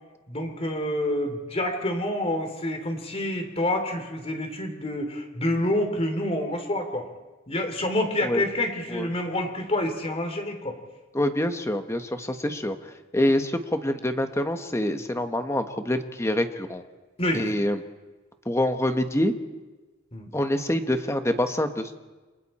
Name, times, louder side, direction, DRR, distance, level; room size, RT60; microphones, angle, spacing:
voice 1, 0.3-7.1 7.5-10.8 17.2-17.5 20.1-20.3, left 1 dB, 30° left, 5 dB, 3.1 m, -27 dB
voice 2, 11.1-12.7 13.1-16.8 17.3-17.8 18.5-19.3 20.3-22.0, left 1 dB, 15° left, 7 dB, 1.3 m, -26 dB
29.5 x 25.0 x 4.4 m, 1.2 s
head